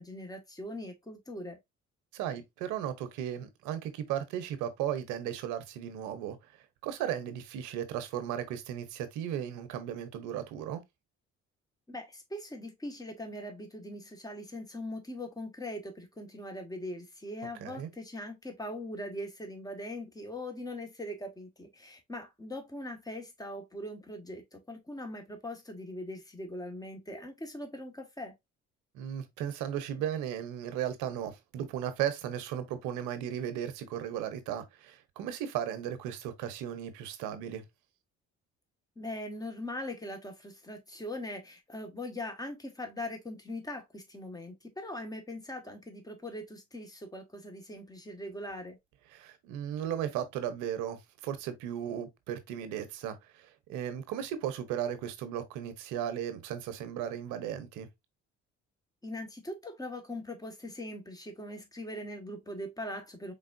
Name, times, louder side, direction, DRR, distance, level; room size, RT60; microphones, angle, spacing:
voice 1, 0.0-1.6 11.9-28.3 38.9-48.8 59.0-63.3, left 1 dB, 15° left, 1.7 m, -41 dB
voice 2, 2.1-6.4 6.8-10.8 17.6-17.9 28.9-37.6 49.1-57.9, right 10 dB, 85° right, 1.0 m, -36 dB
4.6 x 3.7 x 2.6 m
supercardioid pair, 70°, 29 cm